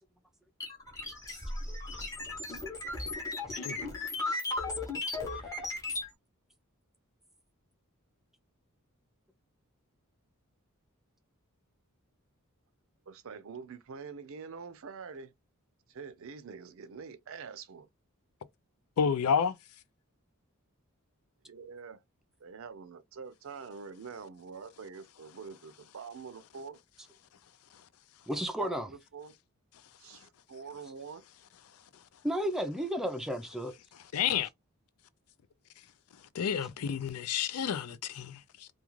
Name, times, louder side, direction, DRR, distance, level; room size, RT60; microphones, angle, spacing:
sound 1, 0.6-6.1, left 2 dB, 15° left, 0.7 m, -36 dB
voice 1, 13.1-15.3 15.9-17.9 21.4-22.0 22.4-26.8 28.6-29.4 30.0-31.2, right 5 dB, 65° right, 0.5 m, -45 dB
voice 2, 19.0-19.6 34.1-34.5 36.3-38.7, left 7 dB, 80° left, 0.4 m, -30 dB
voice 3, 28.3-28.9 32.2-33.7, equal, ahead, 0.4 m, -33 dB
2.4 x 2.3 x 3.0 m
head